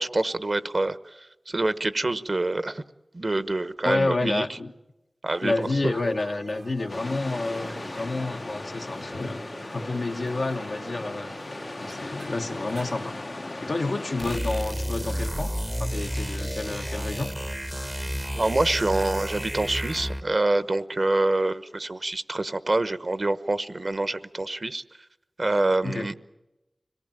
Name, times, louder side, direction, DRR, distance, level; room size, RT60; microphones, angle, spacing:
voice 1, 0.0-2.8 3.1-4.4 5.2-5.9 18.3-24.8 25.4-26.1, right 2 dB, 55° right, 1.0 m, -26 dB
voice 2, 3.8-4.7 5.4-9.4 9.7-11.3 11.8-13.1 13.6-15.5 15.8-17.3 25.8-26.1, left 2 dB, 75° left, 1.2 m, -29 dB
sound 1, 5.3-13.1, right 2 dB, 80° right, 1.3 m, -45 dB
sound 2, 6.9-14.4, left 2 dB, 55° left, 0.8 m, -37 dB
sound 3, 14.2-20.3, equal, 15° right, 0.8 m, -31 dB
25.5 x 18.5 x 9.0 m
wide cardioid pair, 40°, 0 cm